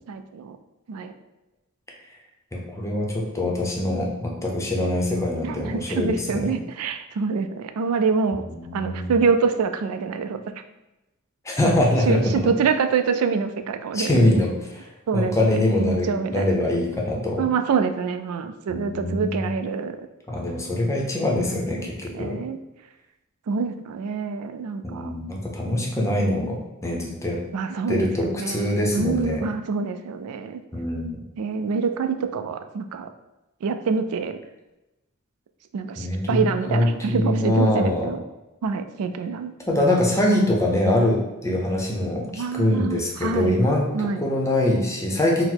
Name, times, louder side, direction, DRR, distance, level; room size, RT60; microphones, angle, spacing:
voice 1, 0.1-0.6 0.9-1.1 5.4-8.4 8.7-10.4 11.6-14.4 15.1-15.4 15.8-16.5 17.4-20.0 21.6-21.9 22.1-22.6 23.5-25.1 27.5-30.6 31.4-33.1 33.6-34.4 35.7-38.2 38.6-39.5 42.3-43.6 43.9-44.2, right 5 dB, 90° right, 8 dB, 0.3 m, -26 dB
voice 2, 2.5-6.5 8.4-9.1 11.4-12.2 13.9-14.9 15.1-17.4 18.7-19.6 20.3-22.4 24.8-27.4 27.9-29.4 30.7-31.2 36.0-36.4 36.7-38.1 39.7-43.9 44.2-45.4, left 1 dB, 15° left, -1 dB, 0.6 m, -23 dB
4.0 x 2.0 x 4.4 m, 1.0 s
head